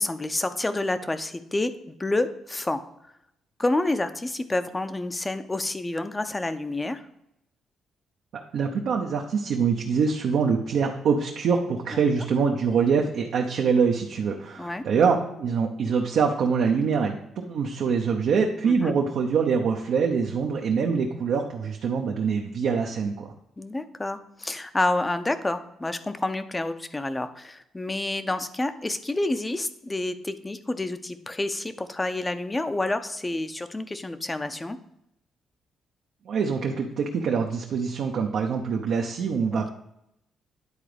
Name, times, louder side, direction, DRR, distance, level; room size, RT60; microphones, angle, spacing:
voice 1, 0.0-1.7 2.0-2.8 3.6-7.0 11.9-12.0 14.6-14.8 18.6-18.9 23.6-34.8 39.5-39.7, left 2 dB, 15° left, 11 dB, 0.6 m, -28 dB
voice 2, 8.3-23.3 36.3-39.7, right 5 dB, 70° right, 1 dB, 0.8 m, -24 dB
9.8 x 3.9 x 5.0 m, 0.80 s
cardioid pair, 90°, 0 cm